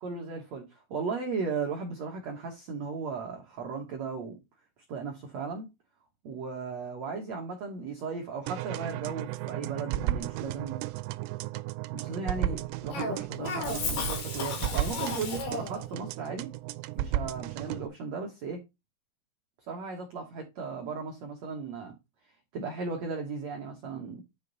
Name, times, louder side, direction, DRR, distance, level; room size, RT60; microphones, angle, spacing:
voice 1, 0.0-4.3 4.9-5.7 6.2-10.8 11.9-16.5 16.9-18.6 19.7-21.9 22.5-24.2, right 4 dB, 70° right, 1.7 m, -36 dB
sound 1, 8.5-17.9, right 13 dB, 85° right, 2.7 m, -34 dB
Cough, 12.9-15.8, left 3 dB, 70° left, 4.4 m, -34 dB
9.6 x 5.2 x 4.0 m
omnidirectional pair, 4.9 m